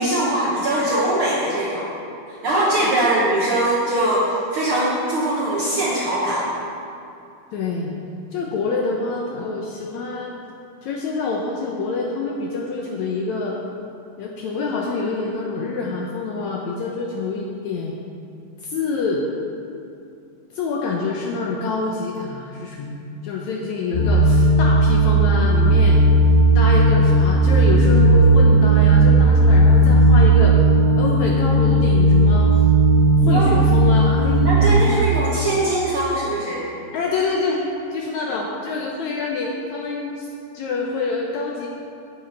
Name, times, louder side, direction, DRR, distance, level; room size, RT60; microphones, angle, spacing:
voice 1, 0.0-1.9 2.3-6.4 33.3-33.4 34.4-36.6, right 1 dB, 60° right, -6 dB, 1.5 m, -21 dB
voice 2, 7.5-8.0 8.3-10.3 10.8-13.6 14.2-17.9 18.6-19.3 20.5-26.0 26.6-30.6 31.0-32.5 33.3-35.1 36.9-37.6 37.9-40.3 40.5-41.7, left 3 dB, 75° left, -1 dB, 1.7 m, -26 dB
sound 1, 23.9-34.7, right 2 dB, 60° left, 3.4 m, -15 dB
9.6 x 8.9 x 4.5 m, 2.6 s
omnidirectional pair, 4.0 m